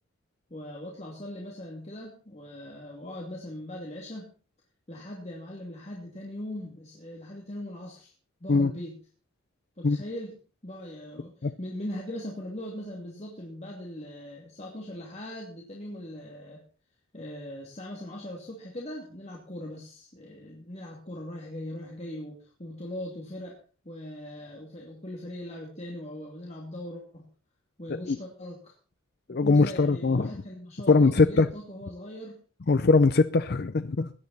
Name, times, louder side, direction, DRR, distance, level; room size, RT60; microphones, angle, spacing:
voice 1, 0.5-4.3 4.9-8.1 8.4-9.0 9.8-10.3 10.6-16.6 17.1-23.6 23.8-27.3 27.8-28.7 29.3-32.4, left 1 dB, 35° left, 2.7 m, -40 dB
voice 2, 29.3-30.3 30.9-31.5 32.7-34.1, left 3 dB, 50° left, 0.5 m, -21 dB
17.5 x 11.0 x 4.1 m
head